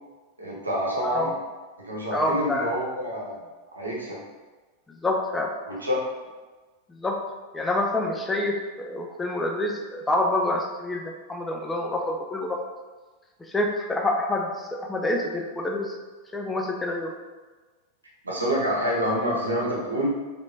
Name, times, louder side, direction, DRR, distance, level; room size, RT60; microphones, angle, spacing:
voice 1, 0.4-1.3 1.8-3.3 3.7-4.2 5.7-6.1 18.2-20.1, equal, 80° right, -4 dB, 1.1 m, -27 dB
voice 2, 1.0-1.3 2.1-2.7 5.0-5.5 6.9-7.2 7.5-12.6 13.4-15.9 16.3-17.1, left 2 dB, 10° left, 1 dB, 0.5 m, -27 dB
4.9 x 3.5 x 2.7 m, 1.3 s
figure-of-eight pair, 90°, 0 cm